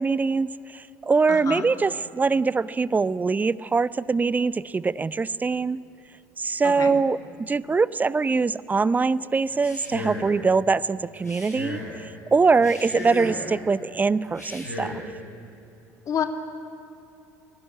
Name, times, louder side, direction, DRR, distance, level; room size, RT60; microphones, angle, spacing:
voice 1, 0.0-5.8 6.4-14.9, right 4 dB, 20° right, 19 dB, 0.7 m, -23 dB
voice 2, 1.3-1.7 6.6-6.9 16.1-16.3, left 8 dB, 40° left, 6 dB, 2.5 m, -28 dB
Male speech man speaking, 9.5-10.4 11.2-11.9 12.5-13.5 14.3-15.0, left 1 dB, 85° left, 4.2 m, -35 dB
29.5 x 17.5 x 9.5 m, 2.9 s
figure-of-eight pair, 60°, 9 cm